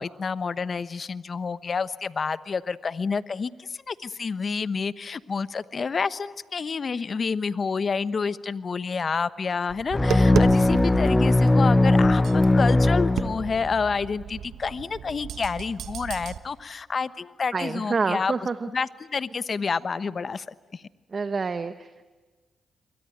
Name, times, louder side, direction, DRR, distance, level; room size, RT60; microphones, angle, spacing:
voice 1, 0.0-18.3 18.7-20.8, left 5 dB, 50° left, 15 dB, 1.1 m, -29 dB
Tap, 9.7-16.4, right 9 dB, 75° right, 1.2 m, -35 dB
sound 1, 9.9-13.8, left 2 dB, 20° left, 0.9 m, -19 dB
voice 2, 17.5-18.7 21.1-22.1, right 4 dB, 50° right, 10 dB, 1.3 m, -28 dB
27.5 x 23.0 x 9.2 m, 1.3 s
supercardioid pair, 45°, 0 cm